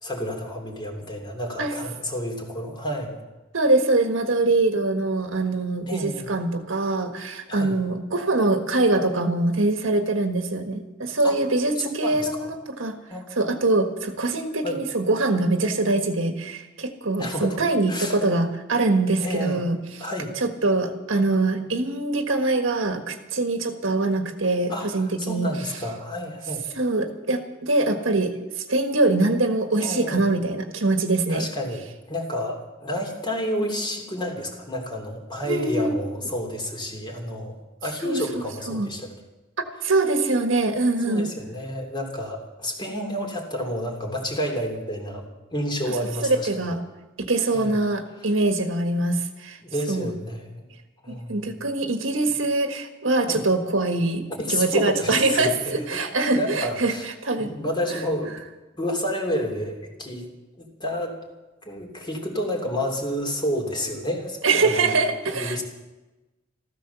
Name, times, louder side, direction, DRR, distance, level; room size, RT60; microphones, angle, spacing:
voice 1, 0.0-3.2 5.9-6.3 7.5-7.8 11.2-11.4 11.8-12.5 13.1-13.5 14.6-14.8 17.2-17.6 17.9-18.2 19.2-19.7 20.0-20.3 24.7-26.6 29.8-30.2 31.3-39.1 41.1-45.2 45.5-46.5 47.5-47.7 48.2-48.3 49.6-50.6 51.0-51.5 53.3-53.4 54.4-56.1 56.3-57.1 57.4-58.3 58.8-60.3 60.6-61.2 61.6-64.9 65.3-65.6, equal, 25° left, 2 dB, 3.1 m, -30 dB
voice 2, 3.5-13.0 13.4-19.8 20.4-25.5 26.8-28.3 28.7-31.5 35.4-35.9 38.0-38.9 39.8-41.3 46.2-46.8 47.2-49.6 49.9-50.1 51.1-56.9 57.2-57.5 57.9-58.0 64.4-65.6, right 2 dB, 80° right, 6 dB, 1.6 m, -23 dB
14.5 x 14.0 x 7.0 m, 1.1 s
head